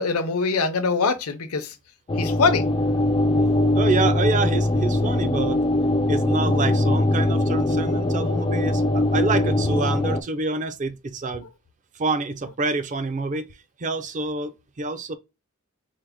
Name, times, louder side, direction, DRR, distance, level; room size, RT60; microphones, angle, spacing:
voice 1, 0.0-1.7 2.2-2.7, left 4 dB, 80° left, 0.6 m, -23 dB
sound 1, 2.1-10.2, left 1 dB, 20° left, 0.3 m, -21 dB
voice 2, 3.7-5.6 6.1-11.4 11.9-13.5 13.8-15.1, right 3 dB, 35° right, 0.5 m, -27 dB
4.6 x 2.1 x 3.4 m
head